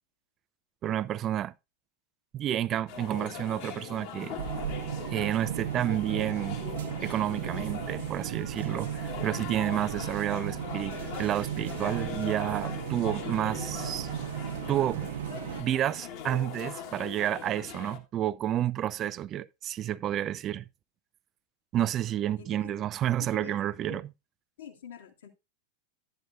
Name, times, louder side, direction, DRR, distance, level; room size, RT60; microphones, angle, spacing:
voice 1, 0.8-1.5 2.3-4.4 5.1-6.6 7.0-14.1 14.7-15.1 15.6-20.6 21.7-24.0, right 11 dB, 30° right, 0.4 m, -30 dB
sound 1, 2.9-18.0, left 8 dB, 45° left, 1.5 m, -41 dB
sound 2, 4.4-15.6, right 10 dB, 60° right, 1.0 m, -36 dB
voice 2, 22.4-24.0 24.6-25.3, left 9 dB, 60° left, 2.0 m, -47 dB
12.0 x 9.2 x 2.5 m
figure-of-eight pair, 90°, 0 cm